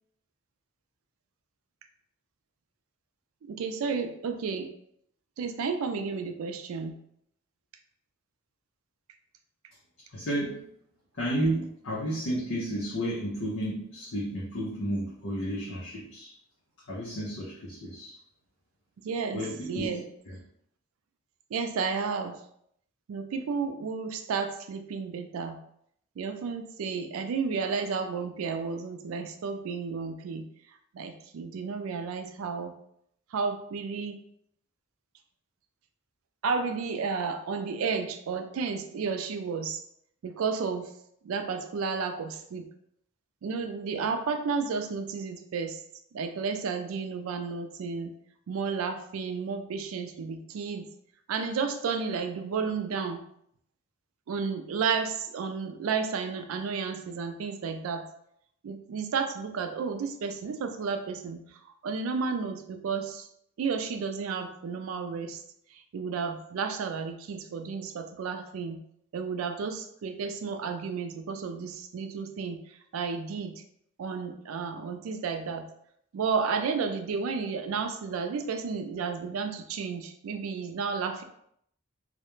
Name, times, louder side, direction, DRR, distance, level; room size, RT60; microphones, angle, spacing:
voice 1, 3.4-4.7 5.4-7.0 19.0-19.4 19.7-20.0 21.5-22.4 23.1-25.6 26.2-30.4 30.9-32.7 33.3-34.2 36.4-39.8 40.2-40.9 41.2-42.6 43.4-45.8 46.1-48.1 48.5-50.9 51.3-53.2 54.3-58.0 58.6-61.4 61.8-63.3 63.6-65.4 65.9-68.8 69.1-72.6 72.9-73.5 74.0-75.7 76.1-81.2, right 5 dB, 80° right, 7 dB, 0.3 m, -32 dB
voice 2, 10.1-10.7 11.1-16.3 16.9-18.2 19.3-19.9 20.3-20.4, right 1 dB, 65° left, -5 dB, 0.6 m, -32 dB
2.4 x 2.1 x 3.0 m, 0.71 s
head